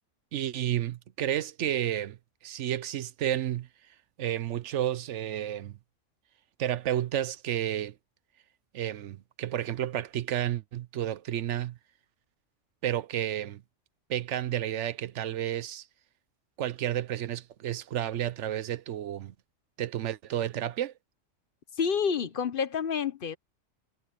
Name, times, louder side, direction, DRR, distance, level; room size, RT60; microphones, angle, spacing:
voice 1, 0.3-2.2 2.4-3.7 4.2-5.8 6.6-7.9 8.7-11.8 12.8-13.6 14.1-15.9 16.6-19.3 19.8-20.9, right 11 dB, 70° right, 1.0 m, -31 dB
voice 2, 21.8-23.4, left 6 dB, 50° left, 1.0 m, -28 dB
omnidirectional pair, 1.3 m